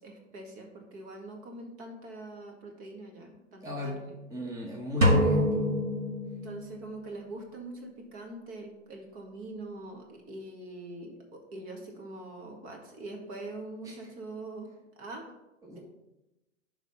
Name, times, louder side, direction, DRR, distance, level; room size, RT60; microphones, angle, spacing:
voice 1, 0.0-4.1 6.4-14.7 15.0-15.3, right 2 dB, 35° right, 2 dB, 1.9 m, -43 dB
voice 2, 3.6-4.0 4.3-5.7 13.8-13.9 15.6-15.8, left 2 dB, 10° right, -2 dB, 1.2 m, -35 dB
sound 1, 5.0-7.0, left 1 dB, 85° right, 1.4 m, -26 dB
11.0 x 3.7 x 5.6 m, 0.98 s
figure-of-eight pair, 105°, 37 cm